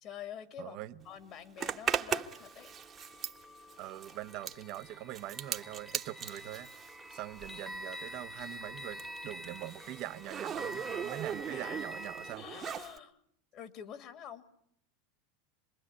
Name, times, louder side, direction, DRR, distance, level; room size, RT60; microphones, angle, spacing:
voice 1, 0.0-2.7 11.5-11.8 12.4-13.2 13.5-14.5, left 9 dB, 50° left, 2.5 m, -47 dB
voice 2, 0.6-1.0 3.8-6.7 7.1-12.5, right 15 dB, 55° right, 1.1 m, -43 dB
Zipper (clothing), 1.6-7.8 8.0-13.0, right 8 dB, 35° right, 1.4 m, -39 dB
sound 1, 2.3-12.3, equal, 5° left, 1.4 m, -47 dB
26.5 x 21.5 x 9.8 m
hypercardioid pair, 90°, 0 cm